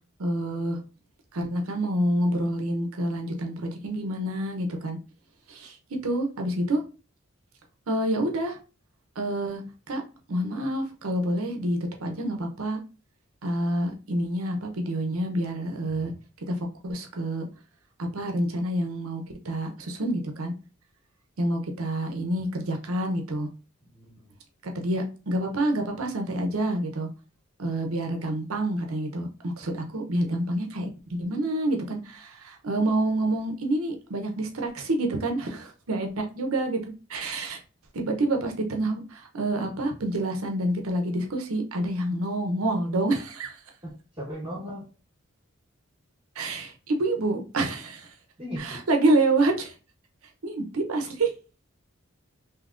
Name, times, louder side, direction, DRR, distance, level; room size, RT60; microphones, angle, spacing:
voice 1, 0.2-0.8 1.3-5.0 5.5-5.8 6.0-6.8 7.9-8.6 9.2-9.6 9.9-10.0 10.3-12.8 13.4-16.1 16.5-16.6 16.8-17.5 18.0-20.5 21.4-23.5 24.6-27.1 27.6-36.8 37.1-37.6 37.9-43.6 46.4-48.1 48.6-49.7 50.4-51.3, right 1 dB, 85° right, 3 dB, 0.7 m, -27 dB
voice 2, 23.9-24.3 43.8-44.8 48.4-48.8, equal, 25° right, -7 dB, 1.0 m, -37 dB
3.5 x 2.8 x 2.4 m, 0.33 s
head